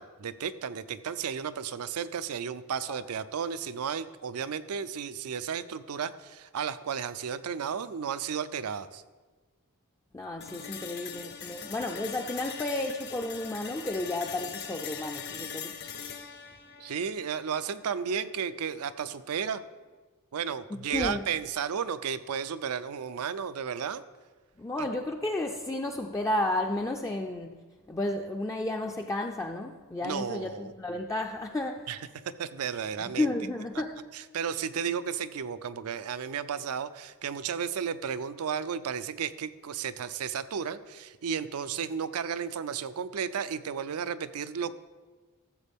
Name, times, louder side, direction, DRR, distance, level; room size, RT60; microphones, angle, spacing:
voice 1, 0.0-9.0 16.8-19.6 20.3-24.0 24.8-24.9 30.0-30.7 31.9-32.0 32.4-33.3 34.1-44.7, right 7 dB, 80° right, 14 dB, 0.5 m, -33 dB
voice 2, 10.1-15.7 20.9-21.2 24.6-27.6 27.9-31.9 33.0-34.0, left 1 dB, 15° left, 2 dB, 0.4 m, -32 dB
sound 1, 10.4-18.4, left 7 dB, 50° left, 0.7 m, -42 dB
14.0 x 7.4 x 3.5 m, 1.4 s
head